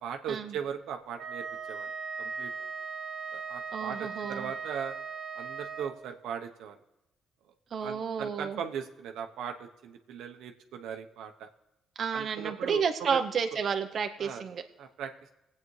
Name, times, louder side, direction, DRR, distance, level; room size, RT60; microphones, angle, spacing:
voice 1, 0.0-1.9 2.2-2.5 3.3-5.0 5.3-6.8 7.4-7.5 7.8-11.5 12.1-13.2 14.2-14.4 14.8-15.3, right 7 dB, 85° right, 5 dB, 0.9 m, -39 dB
Wind instrument woodwind instrument, 1.2-6.0, right 5 dB, 70° right, 1.3 m, -38 dB
voice 2, 3.7-4.5 7.7-8.6 12.0-14.6, right 6 dB, 55° right, 6 dB, 0.8 m, -31 dB
19.5 x 8.5 x 3.2 m, 0.94 s
cardioid pair, 90°, 0 cm